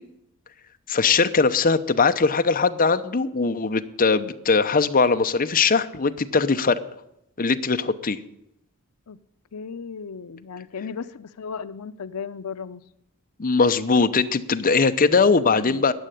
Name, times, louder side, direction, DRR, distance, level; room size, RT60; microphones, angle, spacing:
voice 1, 0.9-6.8 7.4-8.2 13.4-15.9, left 4 dB, 40° left, 8 dB, 0.8 m, -20 dB
voice 2, 9.5-12.8 15.1-15.9, left 6 dB, 90° left, 13 dB, 0.6 m, -36 dB
14.5 x 9.1 x 10.0 m, 0.82 s
head